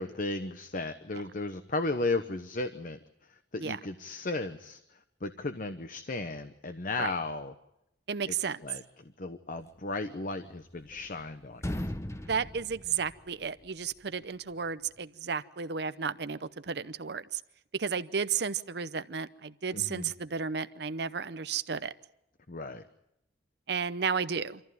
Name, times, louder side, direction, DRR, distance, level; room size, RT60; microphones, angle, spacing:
voice 1, 0.0-7.5 8.3-8.4 8.6-11.6 19.7-20.1 22.5-22.8, left 2 dB, 45° left, 9 dB, 0.9 m, -35 dB
voice 2, 8.1-8.6 12.2-17.4 17.7-21.9 23.7-24.6, right 6 dB, 60° right, 14 dB, 0.7 m, -33 dB
sound 1, 10.4-11.2 11.5-13.7, left 1 dB, 15° left, 0.9 m, -38 dB
26.0 x 14.5 x 9.3 m, 0.86 s
head